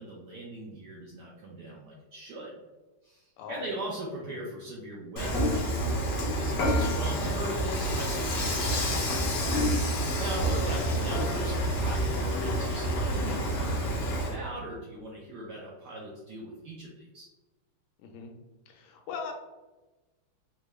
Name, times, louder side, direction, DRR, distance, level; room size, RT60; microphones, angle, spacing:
voice 1, 0.0-2.5 3.0-6.0 6.3-9.4 10.2-17.3, right 1 dB, 80° right, -3 dB, 0.9 m, -40 dB
Dishes pots and pans / Frying (food), 5.2-14.3, equal, 70° left, 0.8 m, -28 dB
voice 2, 10.4-10.8 18.0-18.3 18.7-19.3, left 5 dB, 90° left, 3 dB, 1.6 m, -40 dB
3.8 x 2.2 x 3.1 m, 1.2 s
omnidirectional pair, 2.4 m